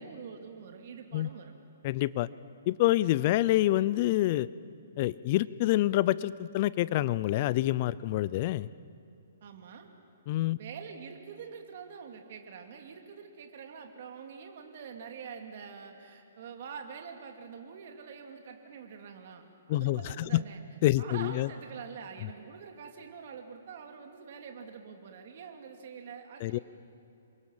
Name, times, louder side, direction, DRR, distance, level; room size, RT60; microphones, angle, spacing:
voice 1, 0.0-1.5 9.4-9.9 10.6-20.6 21.0-26.6, right 6 dB, 45° right, 4 dB, 2.6 m, -45 dB
voice 2, 1.8-2.3 2.7-4.5 5.0-8.7 10.3-10.6 19.7-20.4 20.8-21.5 26.4-26.6, left 15 dB, 35° left, 19 dB, 0.5 m, -27 dB
27.5 x 23.0 x 7.3 m, 2.7 s
hypercardioid pair, 165°, 0 cm